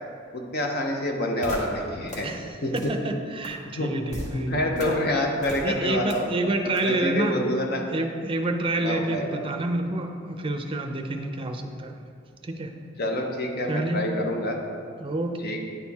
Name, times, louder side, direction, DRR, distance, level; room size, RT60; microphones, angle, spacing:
voice 1, 0.3-2.3 2.6-2.9 3.8-6.3 6.8-7.8 8.8-9.4 13.0-14.6 15.4-15.6, left 1 dB, 55° left, 2 dB, 0.8 m, -27 dB
sound 1, 1.4-1.6 2.1-2.2 2.8-2.9 3.4-3.5 4.1-4.3 4.8-4.9 5.4-5.6 6.1-6.2 6.8-6.9, left 1 dB, 40° left, 1.3 m, -34 dB
voice 2, 2.7-4.6 5.6-7.3 7.9-12.0 12.4-12.7 13.7-14.1 15.0-15.4, right 2 dB, 30° right, 5 dB, 0.5 m, -28 dB
9.5 x 4.4 x 3.5 m, 2.2 s
head